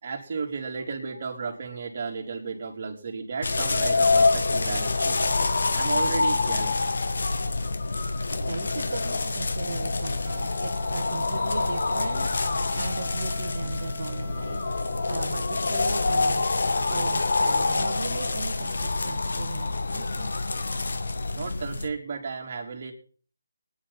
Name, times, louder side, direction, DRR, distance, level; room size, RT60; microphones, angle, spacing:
voice 1, 0.0-5.2 5.7-6.8 21.3-22.9, right 5 dB, 40° right, 0 dB, 3.4 m, -33 dB
sound 1, 3.4-21.9, left 3 dB, 65° left, 1.5 m, -26 dB
voice 2, 8.4-12.3 12.8-14.6 15.1-16.5 16.9-20.3, right 4 dB, 60° right, 3 dB, 1.4 m, -37 dB
Wind instrument woodwind instrument, 10.2-15.2, left 2 dB, ahead, 1.6 m, -44 dB
20.5 x 10.5 x 4.3 m, 0.41 s
figure-of-eight pair, 165°, 0 cm